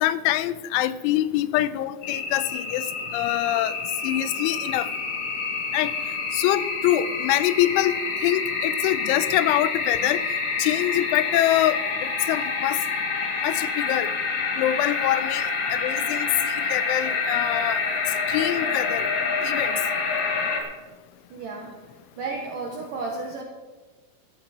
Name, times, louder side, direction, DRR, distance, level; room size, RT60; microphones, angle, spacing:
voice 1, 0.0-2.9 3.1-3.7 4.0-4.9 5.7-5.9 6.3-10.2 10.6-12.8 13.4-14.1 14.6-17.8 18.3-19.1 19.4-19.8, left 14 dB, 85° left, 15 dB, 2.9 m, -24 dB
sound 1, 2.0-20.6, left 4 dB, 55° left, 2.9 m, -27 dB
voice 2, 21.3-21.8 22.2-23.4, right 3 dB, 70° right, 1 dB, 2.1 m, -32 dB
14.5 x 13.5 x 4.2 m, 1.3 s
omnidirectional pair, 5.6 m